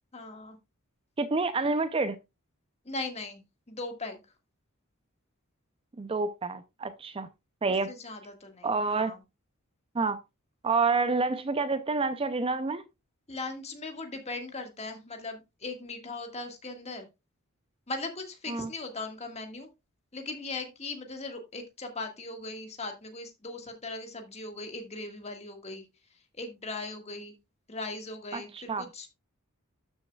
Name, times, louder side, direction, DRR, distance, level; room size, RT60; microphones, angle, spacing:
voice 1, 0.1-0.6 2.8-3.4 3.7-4.2 7.7-9.2 13.3-17.0 17.9-19.7 20.1-25.8 26.4-27.3 27.7-29.1, left 3 dB, 30° left, 1.7 m, -39 dB
voice 2, 1.2-2.2 6.0-7.3 7.6-7.9 8.6-9.1 9.9-10.2 10.6-12.8 18.5-18.7 28.3-28.8, right 4 dB, 25° right, 0.4 m, -28 dB
12.5 x 6.4 x 2.3 m
head